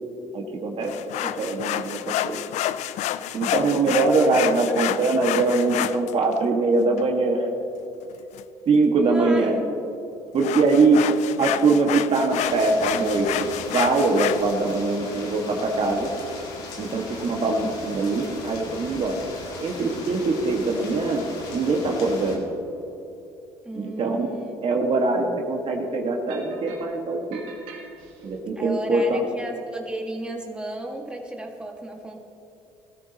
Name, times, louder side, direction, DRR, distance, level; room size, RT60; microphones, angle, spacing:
voice 1, 0.3-0.9 1.2-2.0 2.2-2.4 3.3-7.5 8.6-9.6 10.3-11.0 11.4-16.1 16.8-19.2 19.6-22.4 23.7-24.3 24.6-27.4 28.2-29.3, right 3 dB, 50° right, 1 dB, 1.7 m, -22 dB
sound 1, 0.8-6.4 7.0-7.1 8.1-8.4 10.4-14.4, left 12 dB, 65° left, 0.4 m, -29 dB
voice 2, 8.9-9.6 23.6-24.5 25.0-25.4 28.5-32.2, right 1 dB, 5° right, 0 dB, 1.8 m, -34 dB
sound 2, 12.3-22.4, left 3 dB, 85° left, 1.9 m, -38 dB
sound 3, 26.3-26.9 27.3-28.4, right 5 dB, 85° right, 2.1 m, -45 dB
17.0 x 13.5 x 2.9 m, 2.9 s
hypercardioid pair, 65°, 13 cm